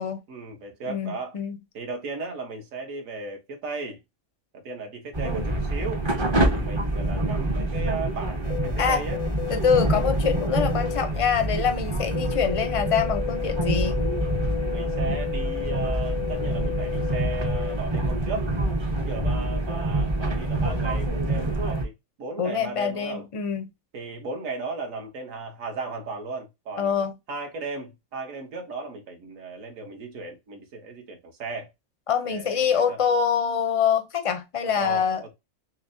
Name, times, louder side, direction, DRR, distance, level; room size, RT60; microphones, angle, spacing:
voice 1, 0.3-1.3 1.7-4.0 4.5-6.0 6.5-9.2 14.7-18.5 19.0-21.9 22.2-23.3 23.9-26.9 27.3-31.7 32.2-33.0 34.8-35.3, right 3 dB, 65° right, 1.4 m, -36 dB
voice 2, 0.9-1.6 8.8-9.0 9.5-14.0 22.4-23.7 26.8-27.2 32.1-35.2, left 7 dB, 50° left, 0.4 m, -25 dB
sound 1, 5.1-21.8, right 1 dB, 30° right, 0.5 m, -26 dB
sound 2, 8.4-17.8, left 16 dB, 90° left, 1.1 m, -34 dB
6.0 x 2.1 x 2.5 m
omnidirectional pair, 1.5 m